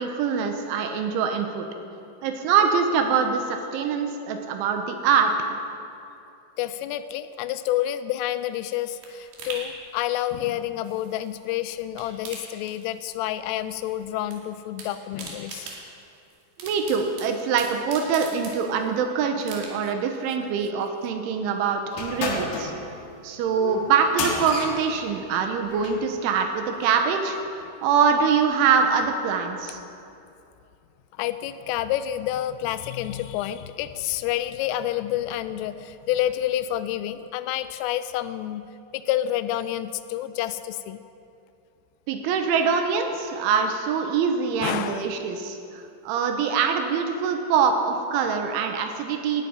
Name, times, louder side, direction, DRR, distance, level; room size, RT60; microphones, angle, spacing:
voice 1, 0.0-1.7 2.2-5.3 16.6-22.7 23.2-29.8 42.1-49.5, right 6 dB, 80° right, 5 dB, 3.4 m, -24 dB
voice 2, 6.6-15.7 31.2-38.7 38.9-41.0 44.6-45.2, left 12 dB, 85° left, 12 dB, 3.2 m, -29 dB
sound 1, 8.2-11.5 11.8-13.3 13.6-14.4 14.6-19.0 19.4-20.0 20.4-20.5, right 4 dB, 60° right, 4.0 m, -42 dB
sound 2, 21.9-26.1, left 3 dB, 60° left, 2.5 m, -32 dB
18.5 x 13.0 x 5.3 m, 2.6 s
omnidirectional pair, 5.7 m